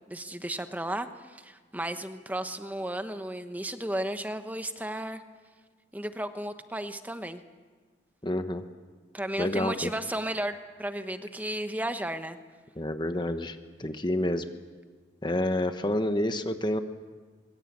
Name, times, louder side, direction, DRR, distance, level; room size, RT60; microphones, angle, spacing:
voice 1, 0.1-5.2 5.9-7.4 9.1-12.4, right 1 dB, 10° right, 9 dB, 1.0 m, -34 dB
voice 2, 8.2-8.6 9.4-9.9 12.8-14.4 15.2-16.8, left 1 dB, 25° left, 8 dB, 1.1 m, -28 dB
23.5 x 22.5 x 8.7 m, 1.4 s
head